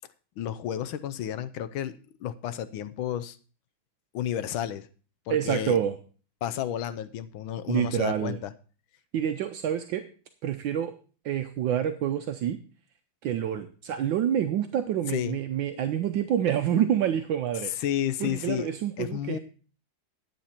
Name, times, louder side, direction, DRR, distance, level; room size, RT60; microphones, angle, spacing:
voice 1, 0.4-3.4 4.1-4.9 5.3-5.8 6.4-8.5 15.1-15.4 15.7-15.8 17.6-18.7 19.0-19.4, left 10 dB, 85° left, 13 dB, 1.5 m, -31 dB
voice 2, 5.3-6.0 7.7-8.4 9.1-10.0 10.4-10.9 11.2-12.6 13.2-17.7 18.2-19.4, right 9 dB, 75° right, 8 dB, 1.4 m, -27 dB
11.0 x 8.5 x 4.3 m, 0.39 s
omnidirectional pair, 2.2 m